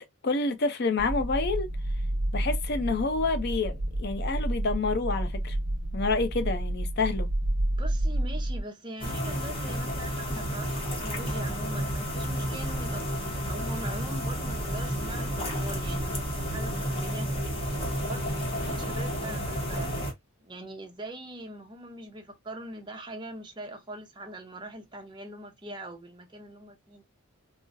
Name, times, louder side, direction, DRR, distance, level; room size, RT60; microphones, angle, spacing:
voice 1, 0.2-1.7 2.3-5.6 5.9-7.3, left 3 dB, 50° left, 0.5 m, -28 dB
sound 1, 1.0-8.6, right 1 dB, 45° right, 1.0 m, -30 dB
voice 2, 7.8-17.3 18.1-20.1 20.4-27.0, right 1 dB, 20° right, 0.6 m, -42 dB
sound 2, 9.0-20.1, equal, 25° left, 0.9 m, -31 dB
3.8 x 2.0 x 2.5 m
head